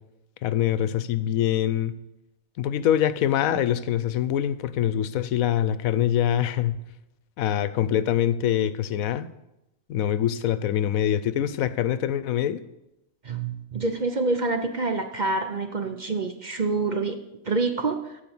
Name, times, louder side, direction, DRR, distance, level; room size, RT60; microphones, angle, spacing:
voice 1, 0.4-1.9 2.6-6.8 7.4-9.3 9.9-12.6, left 10 dB, 80° left, 15 dB, 1.1 m, -24 dB
voice 2, 13.2-17.2 17.4-18.0, right 3 dB, 40° right, 6 dB, 0.7 m, -26 dB
14.0 x 5.0 x 7.1 m, 0.91 s
omnidirectional pair, 1.4 m